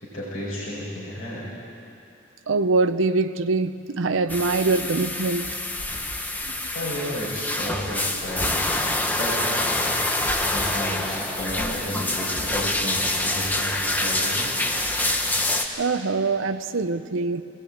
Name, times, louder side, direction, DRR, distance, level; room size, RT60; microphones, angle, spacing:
voice 1, 0.0-1.5 6.7-8.9 9.2-9.4 10.4-14.5, equal, 40° left, -8 dB, 5.1 m, -32 dB
voice 2, 2.5-5.5 15.8-17.4, right 3 dB, 70° right, 9 dB, 0.7 m, -23 dB
sound 1, 4.3-15.6, left 1 dB, 10° left, 1.2 m, -26 dB
20.5 x 17.0 x 8.8 m, 2.6 s
head